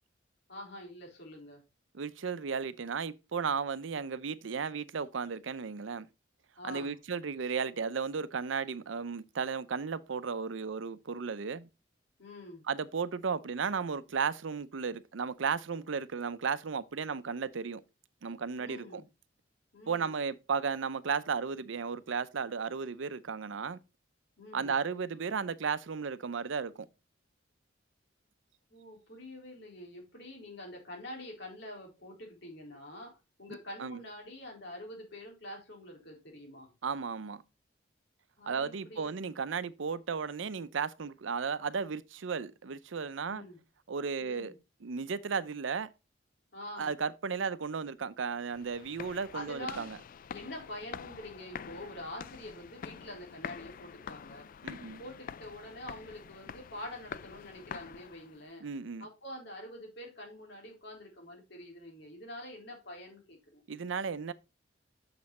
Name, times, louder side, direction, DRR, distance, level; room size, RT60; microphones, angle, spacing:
voice 1, 0.5-1.6 6.6-7.0 12.2-12.6 18.6-19.1 19.7-20.2 24.4-24.8 28.7-33.1 33.4-36.7 38.4-39.2 43.3-43.6 44.2-44.6 46.5-46.9 49.3-49.9 50.3-54.5 55.0-58.6 59.0-63.6, left 1 dB, 65° left, 4.0 m, -46 dB
voice 2, 1.9-6.1 6.6-11.7 12.7-17.8 18.2-19.0 19.9-23.8 24.5-26.9 33.8-34.0 36.8-37.4 38.5-43.4 43.9-44.5 44.8-45.9 46.8-50.0 54.6-55.0 58.6-59.1 63.7-64.3, right 5 dB, 80° right, 0.6 m, -34 dB
sound 1, 48.4-58.4, left 7 dB, 45° left, 0.4 m, -46 dB
6.8 x 6.5 x 4.1 m
head